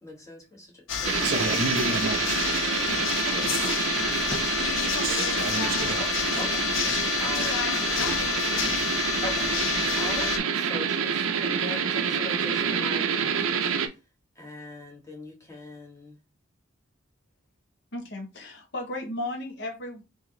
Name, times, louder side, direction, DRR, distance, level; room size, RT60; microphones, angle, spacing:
voice 1, 0.0-1.3 6.0-6.1 6.4-6.7 7.2-7.9 8.5-8.7 9.2-9.5 9.9-14.0 14.3-16.2, left 1 dB, 15° left, 1.2 m, -40 dB
sound 1, 0.9-10.4, left 7 dB, 70° left, 0.5 m, -28 dB
sound 2, 1.0-13.9, right 7 dB, 90° right, 0.5 m, -28 dB
voice 2, 1.2-2.2 3.3-3.9 4.9-6.0, right 3 dB, 45° right, 0.5 m, -32 dB
voice 3, 4.1-4.6 17.9-20.0, left 1 dB, 55° left, 0.9 m, -35 dB
3.1 x 2.7 x 3.7 m
head